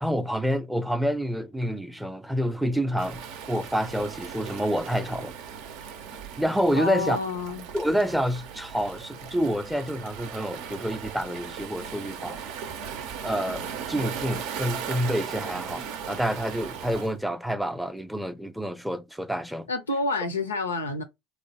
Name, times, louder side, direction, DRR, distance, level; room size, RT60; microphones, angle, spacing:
voice 1, 0.0-3.2 3.5-5.3 6.4-7.2 7.7-12.4 13.2-19.7, equal, 5° right, 0.5 m, -28 dB
Waves surf, 3.0-17.1, right 7 dB, 65° right, 0.5 m, -38 dB
voice 2, 6.8-7.6 19.7-21.0, left 3 dB, 90° left, 0.5 m, -28 dB
3.0 x 2.1 x 2.8 m
hypercardioid pair, 65°, 0 cm